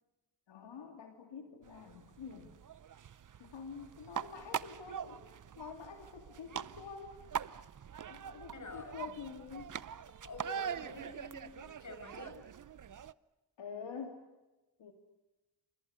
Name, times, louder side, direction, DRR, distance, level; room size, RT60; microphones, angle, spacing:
voice 1, 0.5-2.5 3.4-5.3 5.6-7.2 8.1-9.7 13.6-14.2 14.8-14.9, left 6 dB, 75° left, 4 dB, 2.8 m, -47 dB
sound 1, 1.6-13.1, right 8 dB, 45° right, 0.8 m, -44 dB
voice 2, 8.5-9.0 10.2-12.4, left 2 dB, 40° left, 7 dB, 7.3 m, -47 dB
29.5 x 27.5 x 6.6 m, 1.1 s
cardioid pair, 85°, 44 cm